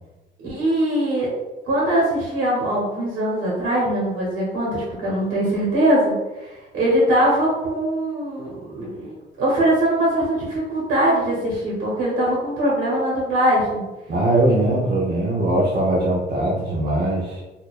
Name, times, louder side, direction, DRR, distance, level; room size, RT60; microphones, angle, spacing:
voice 1, 0.4-1.3 1.6-6.1 6.5-13.8, right 1 dB, 90° right, -6 dB, 1.3 m, -21 dB
voice 2, 14.1-17.4, right 1 dB, 55° right, -4 dB, 0.8 m, -21 dB
4.3 x 2.7 x 2.5 m, 1.1 s
cardioid pair, 90°, 20 cm